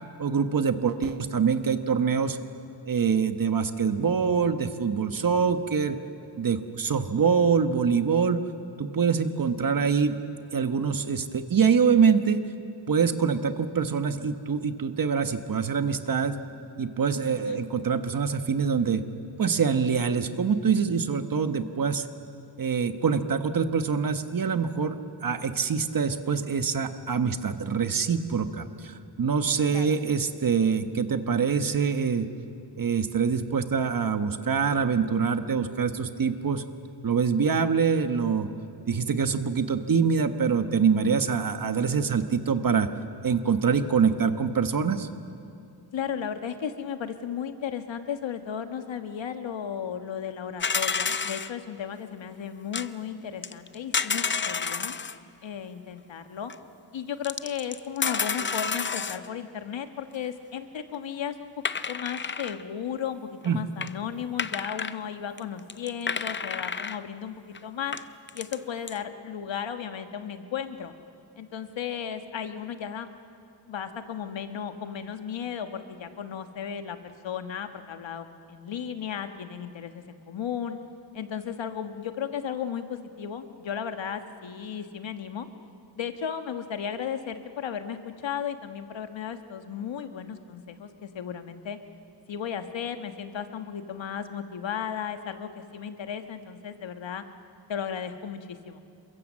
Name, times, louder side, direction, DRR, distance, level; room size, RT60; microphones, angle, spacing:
voice 1, 0.2-2.4 2.9-6.0 6.4-8.4 8.8-10.2 10.5-12.4 12.9-16.4 16.8-19.0 19.4-22.1 22.6-32.3 32.8-36.6 37.0-38.5 38.9-42.9 43.2-45.1 63.4-63.6, right 6 dB, 50° right, 9 dB, 1.2 m, -25 dB
voice 2, 17.3-17.6 29.7-30.0 45.9-54.9 55.4-56.5 56.9-61.5 61.9-68.0 68.3-70.9 71.4-73.1 73.7-80.8 81.1-85.5 86.0-91.8 92.3-97.2 97.7-98.8, left 8 dB, 85° left, 8 dB, 1.5 m, -35 dB
sound 1, 50.6-51.5 52.7-52.9 53.4-55.2 56.5-56.6 57.2-59.3 61.7-62.6 63.4-63.5 63.8-63.9 64.4-65.0 65.4-65.5 65.7-67.0 67.5-67.6 67.9-68.6 68.9-69.0, left 5 dB, 25° left, 0.5 m, -30 dB
28.0 x 23.5 x 7.5 m, 2.5 s
wide cardioid pair, 150°, 44 cm